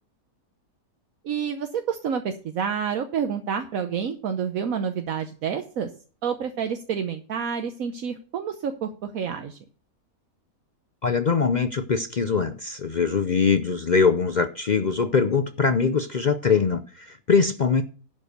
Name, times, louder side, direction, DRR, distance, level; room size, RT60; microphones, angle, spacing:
voice 1, 1.2-5.9 6.2-9.6, right 7 dB, 70° right, 7 dB, 1.2 m, -29 dB
voice 2, 11.0-17.8, left 5 dB, 55° left, 10 dB, 0.4 m, -22 dB
11.0 x 5.3 x 6.6 m, 0.39 s
omnidirectional pair, 1.6 m